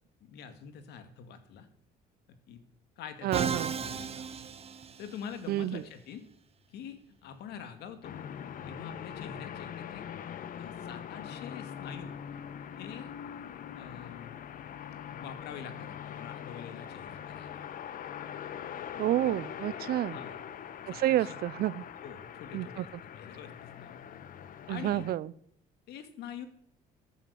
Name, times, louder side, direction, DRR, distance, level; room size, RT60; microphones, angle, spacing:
voice 1, 0.2-1.7 2.5-2.6 3.0-4.2 5.0-6.3 6.7-8.1 8.6-10.1 10.6-12.2 12.8-13.1 13.7-14.4 14.9-17.6 20.1-20.3 20.9-21.4 22.0-22.9 23.2-24.0 24.7-25.1 25.9-26.5, left 8 dB, 80° left, 9 dB, 2.2 m, -45 dB
voice 2, 3.2-3.7 5.5-5.8 19.0-20.2 21.0-21.8 22.5-22.9 24.7-25.3, right 14 dB, 65° right, 21 dB, 0.6 m, -29 dB
Musical instrument, 3.3-5.4, right 6 dB, 35° right, 1.4 m, -35 dB
sound 1, 8.0-25.2, left 9 dB, 55° left, 1.1 m, -42 dB
14.5 x 9.5 x 6.9 m, 0.69 s
cardioid pair, 110°, 17 cm